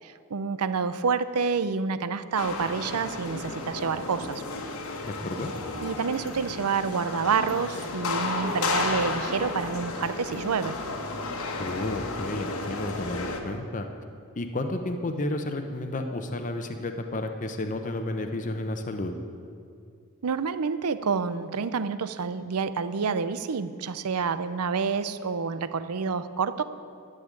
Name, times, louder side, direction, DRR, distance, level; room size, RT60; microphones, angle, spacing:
voice 1, 0.0-4.4 5.8-10.8 20.2-26.6, right 5 dB, 85° right, 13 dB, 0.6 m, -28 dB
sound 1, 2.4-13.4, left 3 dB, 70° left, 1.2 m, -33 dB
voice 2, 5.0-5.5 11.6-13.9 14.4-19.1, left 2 dB, 35° left, 5 dB, 0.7 m, -32 dB
12.0 x 6.6 x 8.9 m, 2.3 s
head